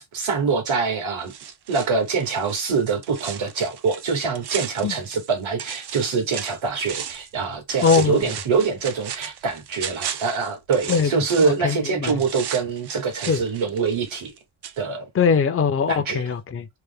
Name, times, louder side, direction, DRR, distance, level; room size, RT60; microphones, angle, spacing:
voice 1, 0.0-1.3 1.7-14.3 14.8-15.1 15.9-16.2, right 5 dB, 70° right, 1.5 m, -24 dB
sound 1, 1.3-5.3 5.6-7.3 7.7-11.7 12.1-14.4 14.6-14.8, right 8 dB, 55° right, 0.6 m, -35 dB
voice 2, 7.8-8.3 10.9-11.1 11.4-12.2 13.3-13.4 15.1-16.7, left 6 dB, 30° left, 0.5 m, -21 dB
3.4 x 2.1 x 3.5 m
cardioid pair, 80°, 49 cm